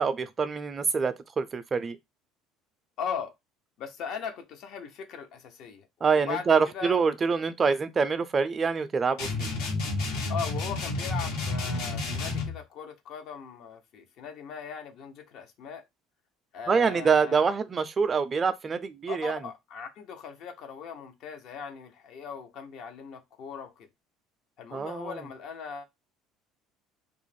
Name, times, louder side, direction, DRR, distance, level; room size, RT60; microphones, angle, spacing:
voice 1, 0.0-2.0 6.0-9.5 16.7-19.4 24.7-25.2, right 5 dB, 30° right, 0.3 m, -25 dB
voice 2, 3.0-3.3 3.8-5.9 6.1-6.5 6.7-7.0 10.3-15.8 16.5-17.6 19.1-23.9 24.6-25.8, left 7 dB, 60° left, 0.6 m, -39 dB
sound 1, 9.2-12.6, left 3 dB, 80° left, 1.1 m, -30 dB
2.4 x 2.0 x 3.1 m
supercardioid pair, 95°, 0 cm